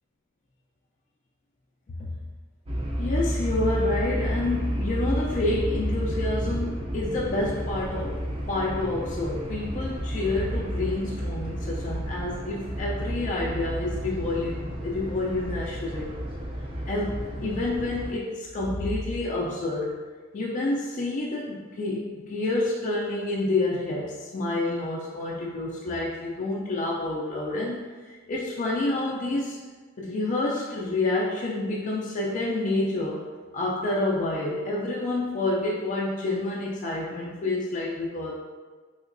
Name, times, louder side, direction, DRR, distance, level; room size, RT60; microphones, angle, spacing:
sound 1, 2.7-18.1, equal, 25° right, 0.4 m, -31 dB
voice 1, 3.0-8.2 8.5-16.1 16.9-20.0 20.3-27.9 28.3-29.6 30.0-33.2 33.5-38.3, left 2 dB, 40° left, -4 dB, 0.4 m, -28 dB
3.5 x 2.9 x 2.5 m, 1.4 s
head